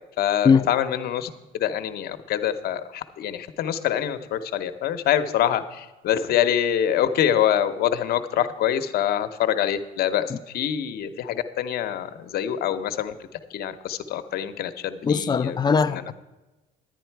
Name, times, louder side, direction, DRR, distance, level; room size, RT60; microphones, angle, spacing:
voice 1, 0.2-13.1 13.5-15.6 15.9-16.1, left 10 dB, 65° left, 10 dB, 0.8 m, -25 dB
voice 2, 15.0-16.1, left 5 dB, 25° left, 12 dB, 0.5 m, -20 dB
10.5 x 9.5 x 4.6 m, 1.1 s
cardioid pair, 110°, 17 cm